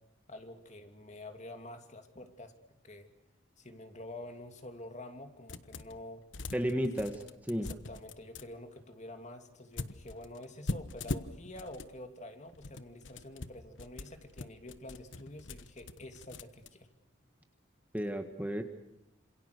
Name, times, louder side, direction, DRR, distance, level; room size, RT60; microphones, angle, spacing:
voice 1, 0.3-2.5 2.8-3.1 3.6-6.2 7.6-16.9, left 1 dB, 35° left, 6 dB, 2.7 m, -48 dB
sound 1, 5.5-6.0 6.3-8.5 9.8-11.9 12.5-16.7, left 2 dB, 70° left, 1.2 m, -42 dB
voice 2, 6.5-7.7 17.9-18.6, equal, 10° right, 5 dB, 1.7 m, -33 dB
28.0 x 27.0 x 6.8 m, 0.86 s
head